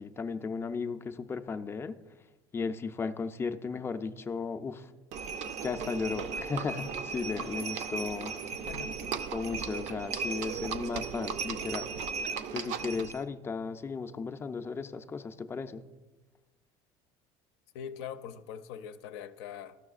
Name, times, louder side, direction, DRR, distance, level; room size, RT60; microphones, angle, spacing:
voice 1, 0.0-2.0 2.5-4.9 5.6-8.3 9.3-11.9 12.5-15.8, left 5 dB, 20° left, 0.4 m, -35 dB
Livestock farm animals working animals, 5.1-13.2, right 6 dB, 60° right, 0.5 m, -36 dB
voice 2, 8.7-9.0 17.7-19.8, left 8 dB, 85° left, 0.5 m, -42 dB
13.5 x 6.1 x 2.4 m
cardioid pair, 130°, 13 cm